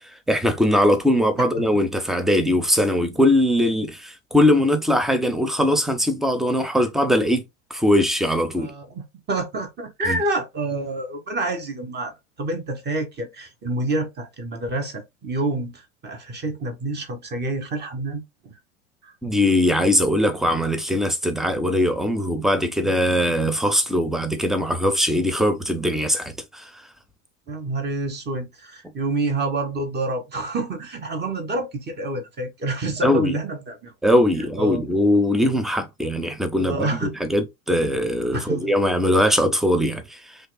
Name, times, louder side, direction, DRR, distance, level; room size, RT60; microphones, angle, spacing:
voice 1, 0.3-7.4 7.7-8.7 10.1-10.2 19.2-26.7 33.0-33.3 34.0-40.4, left 1 dB, ahead, 0.6 m, -21 dB
voice 2, 8.6-18.5 19.0-19.1 27.5-33.9 34.6-34.8 36.6-37.1 38.3-38.6, right 2 dB, 25° right, 1.3 m, -28 dB
6.3 x 2.6 x 2.2 m
hypercardioid pair, 90°, 42 cm